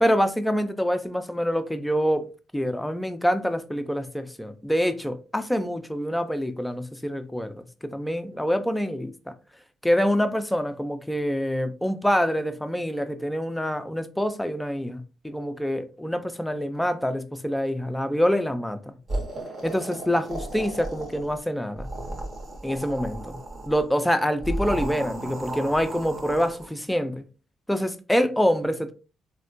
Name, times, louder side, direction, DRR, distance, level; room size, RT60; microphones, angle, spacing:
voice 1, 0.0-9.1 9.8-15.0 15.2-18.9 19.6-21.9 22.6-23.4 23.7-27.2 27.7-28.9, equal, 5° left, 0.4 m, -26 dB
sound 1, 19.1-21.4 21.7-23.8 24.4-26.7, right 2 dB, 40° right, 0.8 m, -34 dB
3.4 x 2.2 x 2.5 m
cardioid pair, 90°, 0 cm